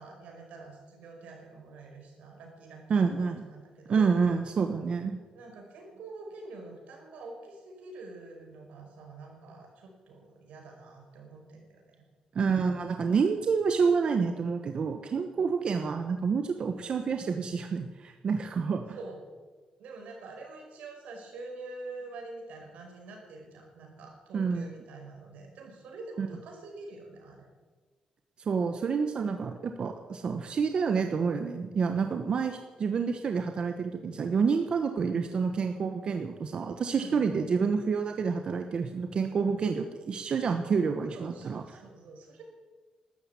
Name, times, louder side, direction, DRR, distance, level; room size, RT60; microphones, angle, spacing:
voice 1, 0.0-4.1 5.3-12.0 19.0-19.2 19.8-27.5 36.9-37.5 41.1-42.4, right 3 dB, 90° right, 1 dB, 5.3 m, -46 dB
voice 2, 2.9-3.4 3.9-5.2 12.3-19.0 24.3-24.7 26.2-26.3 28.5-41.6, right 5 dB, 45° right, 6 dB, 1.1 m, -28 dB
13.0 x 12.5 x 8.4 m, 1.4 s
cardioid pair, 140°, 2 cm